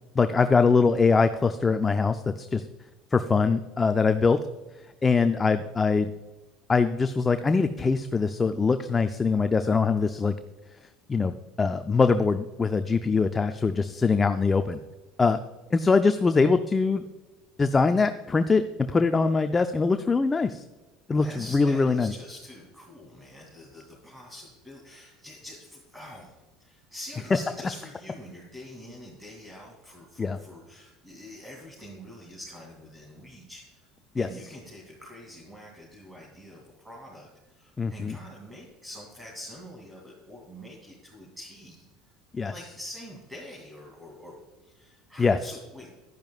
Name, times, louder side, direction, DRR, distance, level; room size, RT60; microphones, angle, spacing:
voice 1, 0.2-2.6 3.1-4.4 5.0-6.1 6.7-10.3 11.1-14.8 15.2-15.4 15.7-17.0 17.6-18.6 18.9-20.6 21.1-21.3 21.5-22.1 30.2-30.4 34.2-34.3 37.8-38.2 42.3-42.5 45.2-45.4, left 4 dB, 25° left, 8 dB, 0.5 m, -23 dB
voice 2, 21.2-33.9 34.1-41.9 42.5-45.9, left 1 dB, 10° right, -3 dB, 2.8 m, -45 dB
11.0 x 10.5 x 2.4 m, 1.2 s
hypercardioid pair, 85°, 0 cm